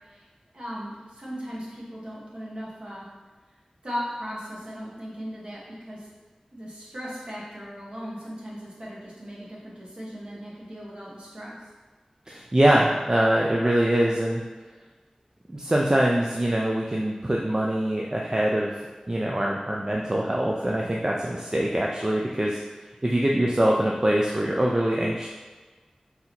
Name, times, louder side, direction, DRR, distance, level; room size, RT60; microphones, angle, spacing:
voice 1, 0.5-3.1 3.8-6.1 6.5-11.6, equal, 50° right, -6 dB, 1.3 m, -37 dB
voice 2, 12.3-14.4 15.5-18.8 19.1-22.6 23.0-25.3, right 1 dB, 30° right, -2 dB, 0.4 m, -23 dB
4.0 x 2.8 x 4.2 m, 1.4 s
wide cardioid pair, 65°, 2 cm